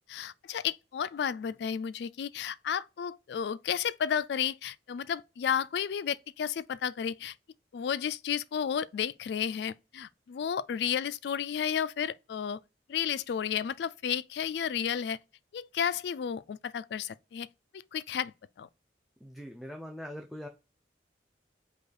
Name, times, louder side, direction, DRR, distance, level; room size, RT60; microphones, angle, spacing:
voice 1, 0.1-7.3 7.7-12.6 12.9-15.2 15.5-17.5 17.7-18.3 18.6-18.7, left 8 dB, 70° left, 0.3 m, -32 dB
voice 2, 19.2-20.5, equal, ahead, 0.4 m, -42 dB
5.2 x 2.4 x 4.0 m
head